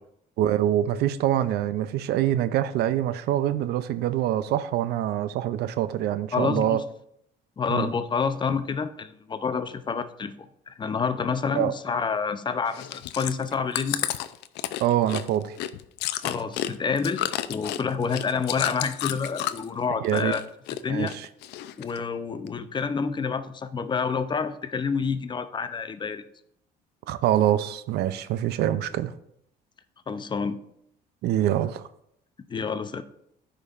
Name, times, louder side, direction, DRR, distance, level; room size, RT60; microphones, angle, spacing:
voice 1, 0.4-6.8 7.7-7.9 11.5-11.7 14.8-15.6 20.0-20.4 20.9-21.3 27.1-29.1 31.2-31.8, right 12 dB, 75° right, 0.5 m, -25 dB
voice 2, 6.3-6.8 7.6-10.3 10.7-14.1 16.2-20.4 20.8-21.1 21.8-26.2 30.1-30.6 32.5-33.0, left 5 dB, 25° left, 0.5 m, -28 dB
Chewing mastication, 12.7-19.7 20.0-20.8 21.1-22.0 22.5-22.6, left 13 dB, 85° left, 0.4 m, -31 dB
12.5 x 5.2 x 2.5 m
cardioid pair, 110°, 17 cm